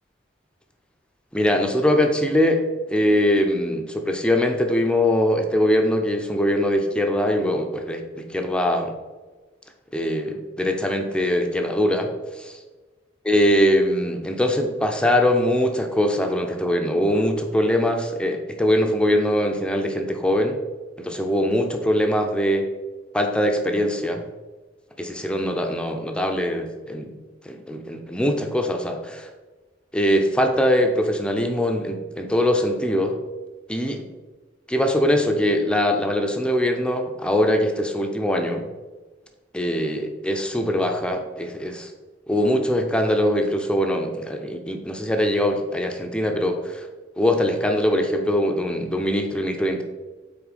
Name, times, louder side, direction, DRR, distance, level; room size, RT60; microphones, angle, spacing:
voice 1, 1.3-2.6 2.9-8.9 9.9-12.1 12.4-12.5 13.2-20.6 21.0-22.7 23.1-24.2 25.0-27.1 27.4-29.3 29.9-33.2 33.7-34.0 34.7-38.7 39.5-41.9 42.3-46.9 47.2-49.8, left 1 dB, 5° left, 4 dB, 0.5 m, -22 dB
5.7 x 4.2 x 4.2 m, 1.2 s
head